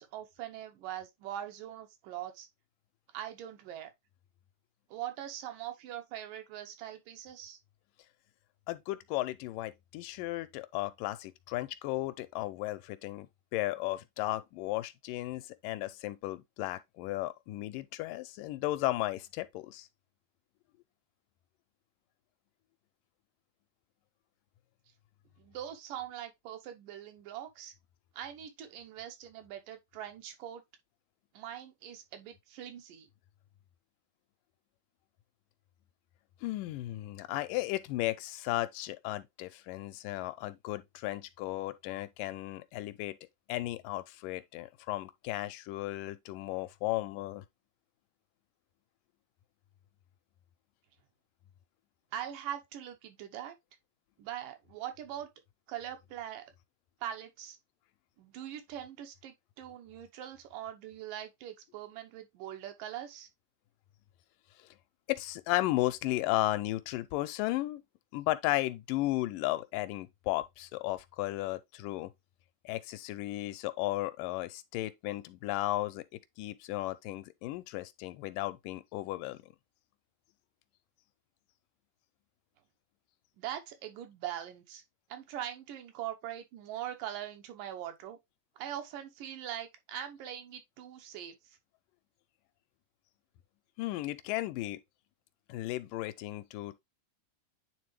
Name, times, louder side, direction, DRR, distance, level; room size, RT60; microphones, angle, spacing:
voice 1, 0.0-2.5 3.1-3.9 4.9-7.6 25.4-27.7 28.2-30.6 31.3-33.1 52.1-53.6 54.2-55.3 55.7-56.5 57.0-57.6 58.2-63.3 83.4-84.8 85.1-88.2 88.6-91.4, right 11 dB, 90° right, 2.6 m, -42 dB
voice 2, 8.7-13.3 13.5-19.9 36.4-43.2 43.5-47.5 65.1-67.8 68.1-72.1 72.7-79.4 93.8-94.8 95.5-96.8, left 17 dB, 90° left, 2.3 m, -35 dB
9.2 x 3.6 x 3.1 m
omnidirectional pair, 3.7 m